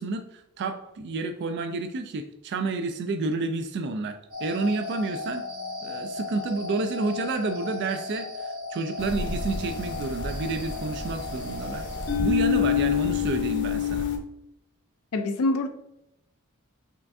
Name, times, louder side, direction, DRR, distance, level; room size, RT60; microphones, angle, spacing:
voice 1, 0.0-5.4 5.8-11.9 12.2-14.1, right 3 dB, 50° right, 0.3 m, -30 dB
sound 1, 4.3-12.2, left 3 dB, 75° right, 1.4 m, -36 dB
sound 2, 9.0-14.2, left 8 dB, 55° left, 0.7 m, -28 dB
voice 2, 15.1-15.7, left 2 dB, 90° left, 0.5 m, -25 dB
5.5 x 3.4 x 2.6 m
head